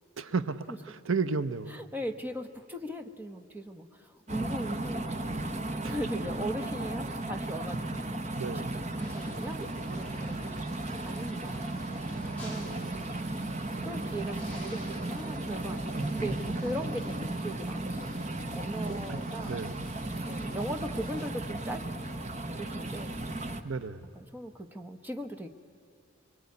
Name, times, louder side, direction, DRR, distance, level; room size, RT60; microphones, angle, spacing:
voice 1, 0.2-1.7 5.8-6.0 8.3-8.7 12.6-13.0 18.8-19.8 23.6-24.1, right 4 dB, 75° right, 12 dB, 0.8 m, -34 dB
voice 2, 1.7-10.7 11.0-13.5 13.8-18.2 18.5-19.6 20.3-21.8 22.6-23.2 24.1-25.5, right 1 dB, 10° right, 5 dB, 1.1 m, -39 dB
sound 1, 4.3-23.6, right 2 dB, 30° right, 1.1 m, -35 dB
sound 2, 9.0-21.3, left 1 dB, 5° left, 7.8 m, -53 dB
24.0 x 23.5 x 9.6 m, 2.6 s
head